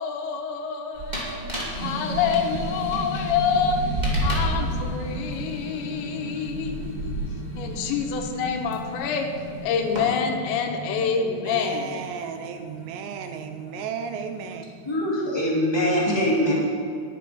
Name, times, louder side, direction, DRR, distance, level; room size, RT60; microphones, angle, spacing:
voice 1, 0.0-1.3 1.8-3.8 4.2-7.1 7.6-9.3 9.6-12.0, left 6 dB, 80° left, 4 dB, 3.1 m, -27 dB
sound 1, 1.0-8.7 9.5-10.0, right 1 dB, 25° right, 0.8 m, -30 dB
sound 2, 1.7-15.2, right 1 dB, 45° left, 2.5 m, -36 dB
voice 2, 11.2-14.7, right 7 dB, 80° right, 7 dB, 2.8 m, -34 dB
voice 3, 14.8-16.5, equal, 10° left, -7 dB, 1.7 m, -23 dB
11.0 x 9.2 x 6.1 m, 2.4 s
omnidirectional pair, 5.2 m